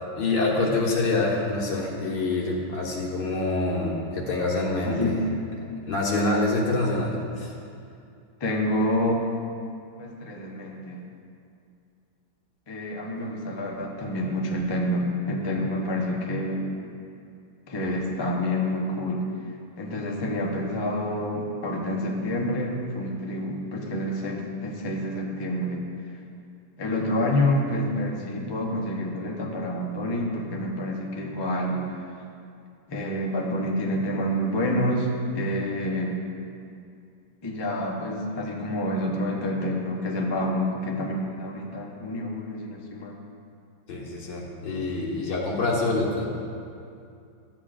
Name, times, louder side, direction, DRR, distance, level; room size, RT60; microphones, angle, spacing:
voice 1, 0.2-5.1 5.8-7.5 43.9-46.3, left 2 dB, 80° left, -3 dB, 2.0 m, -26 dB
voice 2, 4.8-5.2 8.4-9.4 10.0-11.1 12.7-16.7 17.7-19.3 19.8-25.9 26.8-31.9 32.9-36.2 37.4-43.2, left 1 dB, 25° left, -1 dB, 0.5 m, -28 dB
13.5 x 8.1 x 2.5 m, 2.5 s
omnidirectional pair, 2.0 m